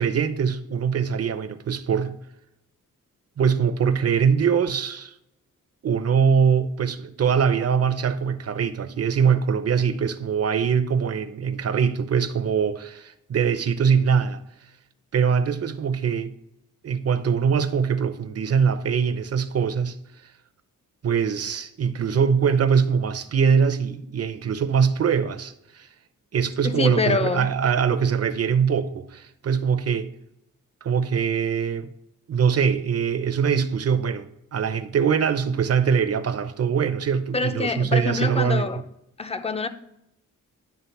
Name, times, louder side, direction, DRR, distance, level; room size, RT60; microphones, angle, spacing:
voice 1, 0.0-2.2 3.4-5.1 5.8-14.4 15.1-16.3 16.8-20.0 21.0-25.9 26.3-30.1 30.8-31.9 32.3-38.7, right 6 dB, 45° right, 0.7 m, -22 dB
voice 2, 26.6-27.5 37.3-38.8 39.2-39.7, left 4 dB, 20° left, 0.6 m, -25 dB
10.5 x 3.8 x 7.0 m
wide cardioid pair, 140°, 33 cm